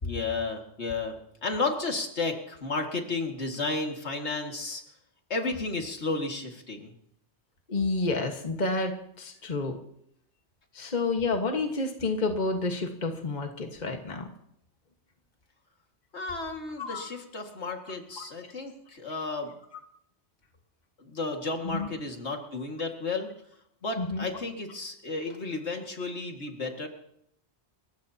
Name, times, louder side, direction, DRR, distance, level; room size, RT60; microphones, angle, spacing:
voice 1, 0.0-4.8 5.3-6.9 16.1-19.5 21.0-23.3 23.8-26.9, left 3 dB, 75° left, 2 dB, 2.3 m, -33 dB
voice 2, 7.7-9.7 10.7-14.3 16.8-17.1 18.2-18.3 21.6-21.9 24.0-24.3, left 3 dB, 40° left, 3 dB, 1.6 m, -29 dB
29.5 x 15.0 x 2.9 m, 0.74 s
omnidirectional pair, 1.2 m